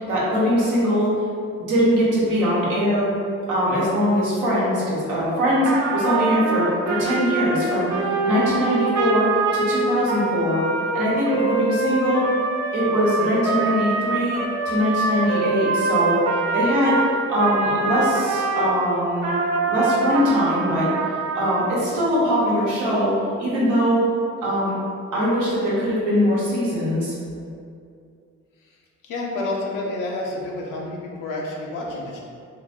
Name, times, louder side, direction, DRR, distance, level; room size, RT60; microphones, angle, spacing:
voice 1, 0.1-1.1 1.7-3.1 3.5-7.9 8.2-10.6 10.9-12.3 12.7-16.2 16.5-17.0 17.3-19.3 19.7-20.9 21.3-24.0 24.4-24.7 25.1-27.1, equal, 90° right, -7 dB, 0.9 m, -21 dB
Trumpet, 5.6-18.7 19.2-21.7, right 3 dB, 55° right, 0.6 m, -24 dB
voice 2, 29.0-32.2, left 2 dB, 90° left, -2 dB, 0.5 m, -29 dB
2.6 x 2.1 x 3.3 m, 2.4 s
supercardioid pair, 55°, 31 cm